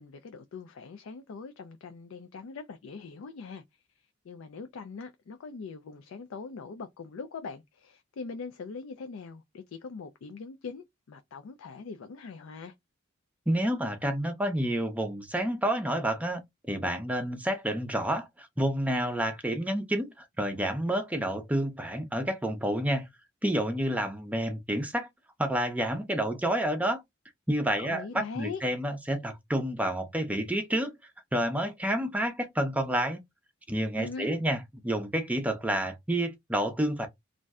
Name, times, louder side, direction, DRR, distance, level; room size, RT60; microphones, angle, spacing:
voice 1, 0.0-12.7 27.8-28.6 34.0-34.4, left 4 dB, 75° left, 0.4 m, -42 dB
voice 2, 13.5-16.4 16.7-23.1 23.4-25.1 25.4-27.0 27.5-30.9 31.3-33.2 33.7-34.6 34.8-37.1, right 1 dB, 5° right, 0.5 m, -29 dB
2.5 x 2.1 x 3.4 m
head